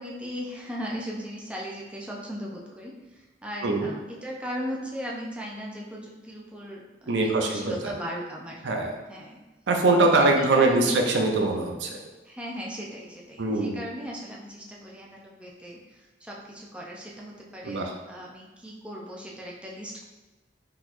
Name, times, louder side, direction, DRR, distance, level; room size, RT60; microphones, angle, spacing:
voice 1, 0.0-8.6 9.1-9.4 10.0-11.0 12.2-20.0, equal, 5° right, -3 dB, 0.5 m, -38 dB
voice 2, 7.1-7.9 8.6-8.9 9.7-12.0 13.4-13.8 17.6-17.9, right 2 dB, 85° right, 2 dB, 0.5 m, -23 dB
3.9 x 2.9 x 2.5 m, 1.2 s
head